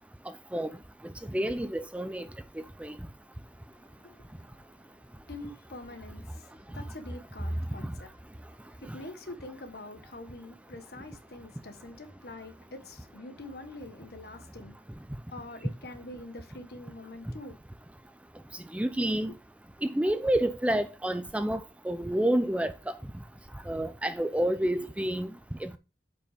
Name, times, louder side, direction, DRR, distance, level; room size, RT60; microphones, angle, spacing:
voice 1, 1.3-2.2 2.8-3.0 7.8-7.9 18.7-19.3 19.8-22.7 23.7-25.3 25.6-25.8, right 1 dB, 5° right, 0.4 m, -28 dB
voice 2, 4.0-4.3 5.3-8.1 8.8-14.8 15.3-17.6, left 2 dB, 65° left, 1.3 m, -45 dB
8.3 x 5.4 x 3.5 m
head